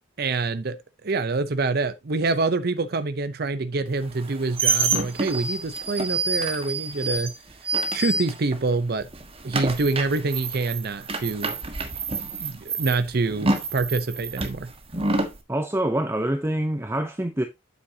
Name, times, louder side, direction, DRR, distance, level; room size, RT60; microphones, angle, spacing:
voice 1, 0.2-0.8 1.0-7.3 7.9-9.1 9.4-11.5 12.4-14.7, right 3 dB, 50° right, 0.6 m, -26 dB
sound 1, 4.1-8.7 9.0-15.4, right 3 dB, 30° right, 1.4 m, -28 dB
voice 2, 15.5-17.4, right 1 dB, 15° right, 0.6 m, -25 dB
8.9 x 8.1 x 2.8 m
head